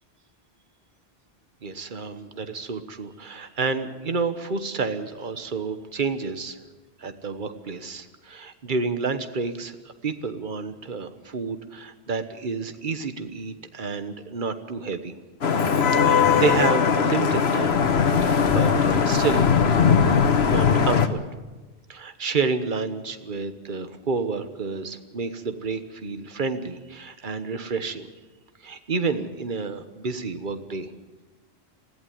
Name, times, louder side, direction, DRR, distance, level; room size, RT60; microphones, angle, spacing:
voice 1, 1.6-6.6 7.0-15.1 15.9-17.9 18.2-19.5 20.5-21.2 21.9-28.1 28.6-30.9, right 4 dB, 50° right, 9 dB, 1.3 m, -29 dB
Vehicle horn car horn honking / Traffic noise roadway noise, 15.4-21.1, left 6 dB, 75° left, 1.4 m, -20 dB
20.0 x 15.0 x 9.3 m, 1.2 s
omnidirectional pair, 1.1 m